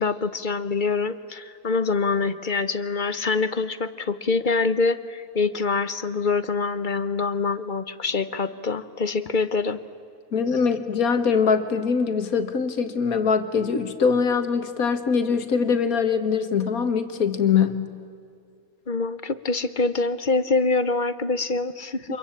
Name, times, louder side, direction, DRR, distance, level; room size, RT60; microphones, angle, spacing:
voice 1, 0.0-9.8 18.9-22.2, left 4 dB, 40° left, 14 dB, 1.0 m, -25 dB
voice 2, 10.3-17.8 22.1-22.2, left 6 dB, 85° left, 10 dB, 2.0 m, -23 dB
27.0 x 22.5 x 8.7 m, 2.4 s
omnidirectional pair, 1.5 m